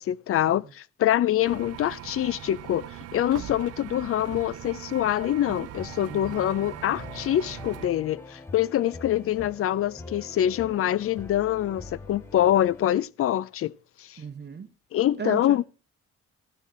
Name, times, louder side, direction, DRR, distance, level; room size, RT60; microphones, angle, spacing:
voice 1, 0.0-2.9 3.1-13.7 14.0-14.2 14.9-15.6, left 12 dB, 50° left, 0.5 m, -25 dB
sound 1, 1.4-7.9, right 12 dB, 55° right, 0.6 m, -41 dB
sound 2, 5.8-13.0, left 2 dB, 10° left, 1.1 m, -44 dB
voice 2, 6.1-6.5 14.2-14.7 15.2-15.6, right 6 dB, 35° right, 1.0 m, -36 dB
15.0 x 6.4 x 4.3 m
cardioid pair, 90°, 30 cm